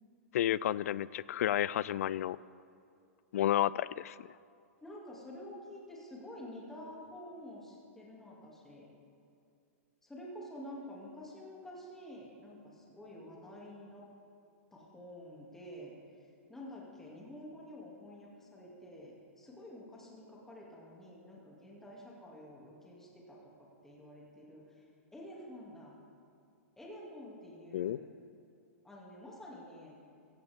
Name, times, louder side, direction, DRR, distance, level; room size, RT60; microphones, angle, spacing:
voice 1, 0.3-2.4 3.3-4.3 27.7-28.0, left 12 dB, 70° left, 20 dB, 0.4 m, -31 dB
voice 2, 4.8-8.9 10.0-14.0 14.7-15.9 16.5-23.4 23.8-24.9 25.1-26.0 26.8-28.1 28.8-29.9, left 1 dB, 5° left, -4 dB, 2.4 m, -49 dB
16.0 x 16.0 x 3.6 m, 2.4 s
hypercardioid pair, 150°, 8 cm